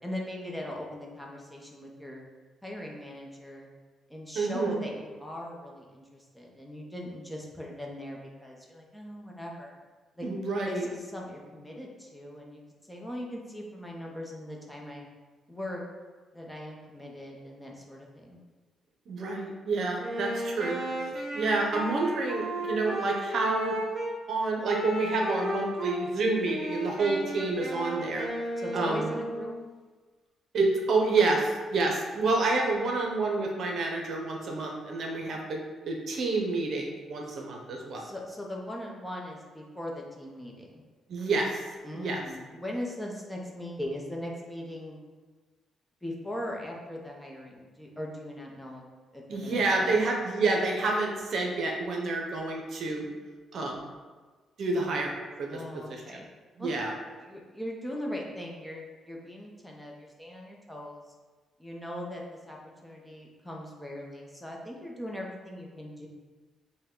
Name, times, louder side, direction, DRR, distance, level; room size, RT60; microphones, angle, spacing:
voice 1, 0.0-2.2 2.6-3.7 4.1-9.7 10.2-10.3 10.6-12.6 12.9-15.0 15.5-15.8 16.3-18.4 28.6-29.5 37.3-37.4 38.0-40.8 41.8-45.0 46.0-48.8 49.1-49.9 55.5-56.3 56.6-61.0 61.6-62.6 62.8-66.1, left 1 dB, 5° left, -2 dB, 0.8 m, -40 dB
voice 2, 4.3-4.8 10.2-10.9 19.1-23.7 24.3-28.3 28.7-29.1 30.5-38.0 41.1-41.6 41.9-42.2 49.3-53.1 53.5-53.9 54.6-55.1 55.4-55.6 55.9-56.0 56.6-56.9, right 3 dB, 60° right, 0 dB, 0.7 m, -28 dB
Wind instrument woodwind instrument, 20.0-24.1 24.6-26.0 26.4-29.7, right 1 dB, 45° right, 1.0 m, -34 dB
5.4 x 2.2 x 3.7 m, 1.3 s
cardioid pair, 90°, 0 cm